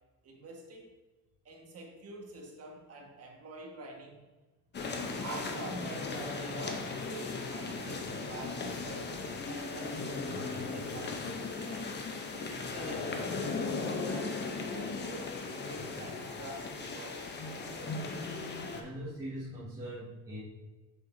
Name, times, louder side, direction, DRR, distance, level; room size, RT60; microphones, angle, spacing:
voice 1, 0.2-0.9 1.4-4.2 5.2-11.9 12.3-17.4 17.7-18.5, right 2 dB, 35° right, 0 dB, 1.7 m, -46 dB
sound 1, 4.7-18.8, left 4 dB, 25° left, 0.8 m, -37 dB
voice 2, 18.7-20.4, right 1 dB, 10° right, -11 dB, 2.2 m, -41 dB
6.7 x 6.6 x 2.7 m, 1.2 s
supercardioid pair, 115°, 41 cm